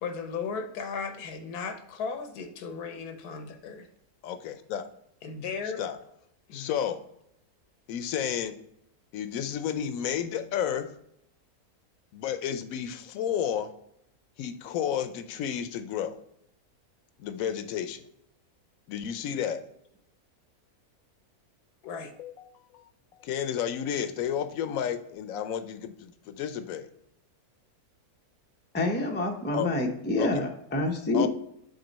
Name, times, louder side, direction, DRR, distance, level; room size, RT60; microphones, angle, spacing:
voice 1, 0.0-3.9 5.2-5.9 6.5-6.7 21.8-22.1, left 5 dB, 90° left, 7 dB, 1.4 m, -36 dB
voice 2, 4.2-4.9 5.8-6.0 6.5-7.0 7.9-8.6 9.1-10.9 12.1-13.7 14.4-16.1 17.2-18.0 18.9-19.6 22.2-22.3 22.7-22.8 23.2-26.9 29.5-29.7 30.2-30.4 31.1-31.3, left 9 dB, 70° left, 10 dB, 1.0 m, -31 dB
voice 3, 28.7-31.3, left 2 dB, 15° left, 2 dB, 0.3 m, -27 dB
6.7 x 3.9 x 4.0 m, 0.77 s
omnidirectional pair, 1.6 m